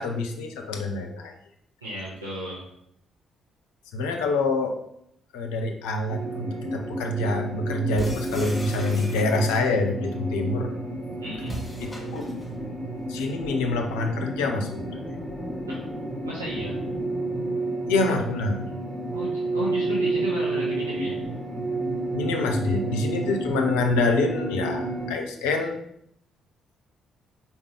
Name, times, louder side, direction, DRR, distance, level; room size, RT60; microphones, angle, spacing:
voice 1, 0.0-1.3 3.9-4.8 5.3-10.7 11.8-12.2 13.1-15.0 17.9-18.6 22.1-25.7, left 3 dB, 70° left, 4 dB, 0.5 m, -26 dB
voice 2, 1.8-2.7 11.2-11.5 15.7-15.9 16.2-16.8 19.1-21.2, equal, 85° right, -6 dB, 0.7 m, -34 dB
sound 1, 6.1-25.1, right 2 dB, ahead, 1.8 m, -30 dB
sound 2, 8.0-9.7 11.4-12.6, equal, 25° left, 1.6 m, -39 dB
4.2 x 3.5 x 3.5 m, 0.72 s
figure-of-eight pair, 45°, 0 cm